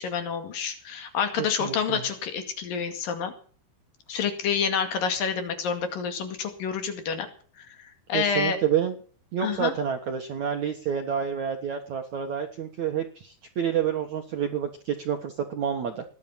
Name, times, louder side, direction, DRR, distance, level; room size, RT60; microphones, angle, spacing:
voice 1, 0.0-3.3 4.1-7.3 7.6-8.6 9.4-9.7, left 6 dB, 55° left, 7 dB, 3.5 m, -28 dB
voice 2, 1.4-2.0 8.1-9.0 9.3-16.0, right 8 dB, 65° right, 4 dB, 1.8 m, -29 dB
19.0 x 11.0 x 5.8 m, 0.43 s
omnidirectional pair, 5.5 m